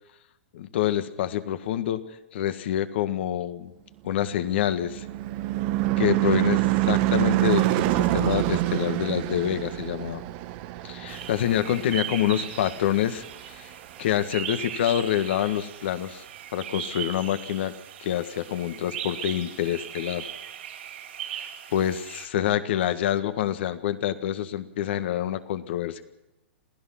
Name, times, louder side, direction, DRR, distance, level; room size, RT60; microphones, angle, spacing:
voice 1, 0.5-2.0 2.3-3.7 4.0-5.0 6.0-10.2 10.8-13.7 14.0-16.2 16.5-17.7 18.0-20.3 21.3-26.0, left 11 dB, 60° left, 10 dB, 1.6 m, -27 dB
Car passing by / Truck / Engine, 4.3-13.0, right 17 dB, 45° right, 1.2 m, -26 dB
sound 1, 11.1-22.3, right 10 dB, 65° right, 4.0 m, -38 dB
27.5 x 16.0 x 5.9 m, 0.93 s
hypercardioid pair, 120°, 7 cm